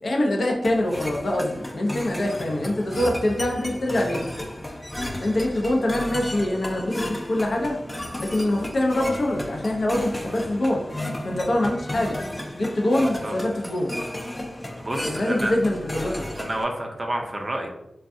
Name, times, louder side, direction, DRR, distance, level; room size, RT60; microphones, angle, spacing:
voice 1, 0.0-4.3 5.2-7.8 8.2-10.8 11.2-12.2 12.5-14.0 15.0-16.3, left 1 dB, 65° left, 0 dB, 0.6 m, -24 dB
sound 1, 0.6-16.6, left 1 dB, 20° left, 0.4 m, -34 dB
voice 2, 14.8-15.5 16.3-17.7, right 1 dB, 35° right, 1 dB, 0.5 m, -29 dB
3.4 x 2.3 x 2.5 m, 0.88 s
wide cardioid pair, 70°, 0 cm